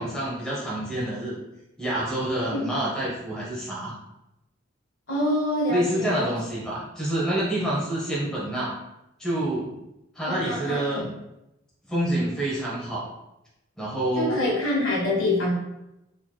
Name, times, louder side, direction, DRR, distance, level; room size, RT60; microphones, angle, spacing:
voice 1, 0.0-1.4 1.8-4.0 5.7-8.7 9.2-9.7 10.1-11.1 11.9-13.1 13.8-14.4, right 1 dB, 5° left, -7 dB, 0.9 m, -27 dB
voice 2, 2.5-2.8 5.1-6.3 10.2-11.1 14.1-15.5, left 1 dB, 70° left, -4 dB, 1.5 m, -26 dB
4.4 x 2.9 x 2.3 m, 0.88 s
head